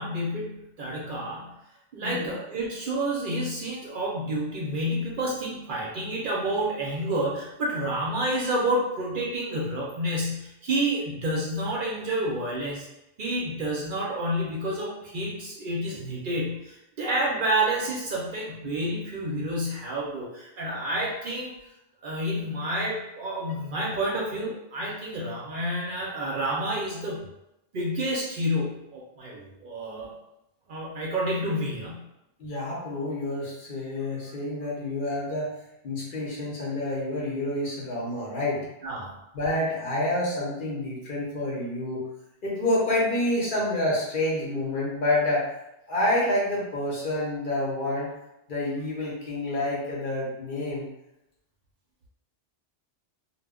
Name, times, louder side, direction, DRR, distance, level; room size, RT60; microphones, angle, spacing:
voice 1, 0.0-1.6 1.9-12.9 13.2-21.5 22.0-27.3 27.7-30.1 30.7-32.1 38.8-39.1, right 1 dB, 55° right, -4 dB, 0.6 m, -29 dB
voice 2, 2.0-2.3 32.4-35.5 35.8-38.6 39.3-42.0 42.4-45.5 45.9-48.1 48.5-50.9, left 1 dB, 55° left, -4 dB, 0.7 m, -28 dB
2.1 x 2.0 x 3.5 m, 0.88 s
omnidirectional pair, 1.2 m